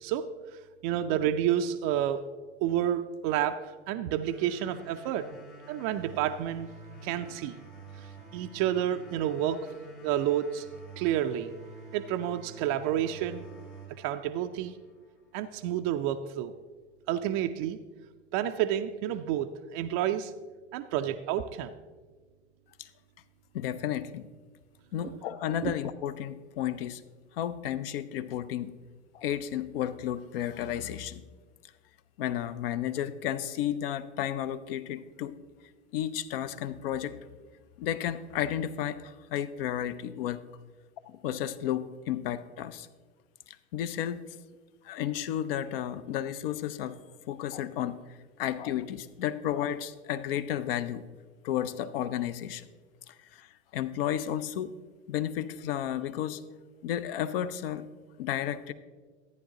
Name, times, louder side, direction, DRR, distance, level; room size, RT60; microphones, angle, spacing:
voice 1, 0.0-0.3 0.8-2.2 2.6-5.3 5.7-6.7 7.0-7.6 8.0-9.7 10.0-10.7 11.0-11.5 11.9-13.5 14.0-14.7 15.3-16.5 17.1-17.8 18.3-20.3 20.7-21.7 25.0-25.2 25.6-25.7, right 11 dB, 35° right, 6 dB, 0.4 m, -30 dB
sound 1, 4.3-15.3, right 4 dB, 85° left, 2.5 m, -48 dB
voice 2, 23.5-24.3 24.9-27.0 27.3-28.7 29.1-31.2 32.2-35.3 35.9-37.2 37.8-40.4 41.1-42.9 43.5-44.2 44.8-47.0 47.3-48.0 48.4-51.0 51.4-52.7 53.1-54.7 55.1-56.4 56.8-57.9 58.2-58.7, left 11 dB, 55° left, 14 dB, 0.6 m, -32 dB
13.5 x 9.3 x 2.9 m, 1.4 s
figure-of-eight pair, 85°, 35 cm